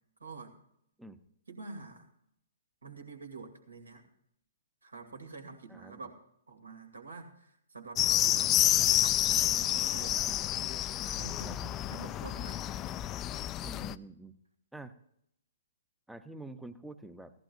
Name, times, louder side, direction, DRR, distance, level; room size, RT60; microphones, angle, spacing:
voice 1, 0.2-0.5 1.5-2.1 2.8-4.0 4.8-6.2 6.5-8.5 8.8-10.4 11.0-12.8, right 4 dB, 75° right, 4 dB, 2.3 m, -47 dB
voice 2, 5.7-6.0 11.4-11.5 13.6-14.4 14.7-15.0 16.1-17.3, right 2 dB, 5° right, 11 dB, 0.7 m, -47 dB
sound 1, 8.0-13.9, left 13 dB, 25° left, 0.3 m, -29 dB
16.5 x 14.5 x 2.6 m, 0.74 s
figure-of-eight pair, 120°, 0 cm